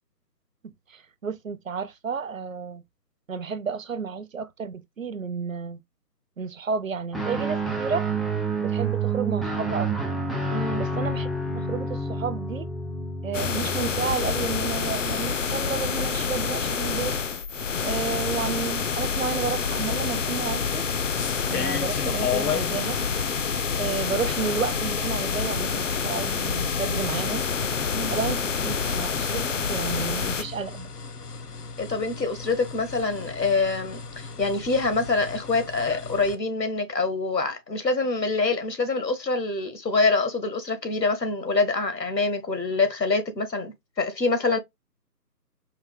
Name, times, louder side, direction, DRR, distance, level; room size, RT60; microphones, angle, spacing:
voice 1, 0.9-2.8 3.3-5.8 6.4-8.1 8.6-9.9 10.8-11.3 11.5-12.7 13.2-17.1 17.8-20.8 21.5-23.0 23.8-27.5 28.1-30.9, right 6 dB, 55° right, 0.6 m, -31 dB
Guitar, 7.1-14.8, right 3 dB, ahead, 0.4 m, -29 dB
voice 2, 10.5-10.8 27.9-28.1 31.8-44.6, left 3 dB, 90° left, 1.7 m, -25 dB
sound 1, 13.3-30.4, left 6 dB, 50° left, 0.5 m, -27 dB
sound 2, 19.8-36.3, left 6 dB, 70° left, 1.0 m, -37 dB
4.7 x 2.5 x 3.5 m
figure-of-eight pair, 150°, 49 cm